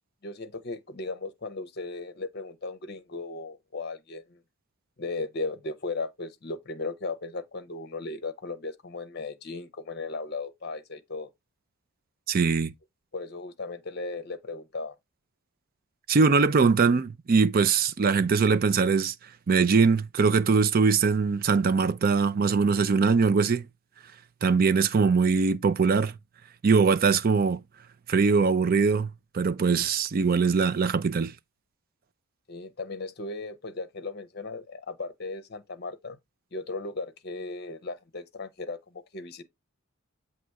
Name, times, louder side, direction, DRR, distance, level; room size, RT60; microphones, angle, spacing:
voice 1, 0.2-4.4 5.0-11.3 13.1-14.9 32.5-36.2 36.5-39.4, left 3 dB, 45° left, 0.7 m, -36 dB
voice 2, 12.3-12.7 16.1-19.1 19.5-23.6 24.4-26.1 26.6-27.6 28.1-29.1 29.3-31.3, right 5 dB, 40° right, 0.4 m, -22 dB
7.5 x 3.0 x 4.5 m
head